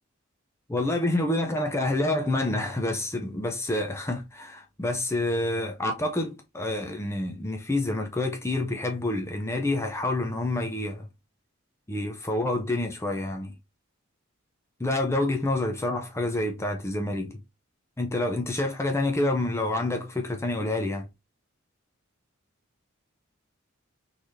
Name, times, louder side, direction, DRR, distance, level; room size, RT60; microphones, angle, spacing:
voice 1, 0.7-11.1 11.9-13.5 14.8-17.4 18.0-21.1, left 2 dB, 15° left, 0.5 m, -28 dB
3.9 x 3.1 x 2.6 m
head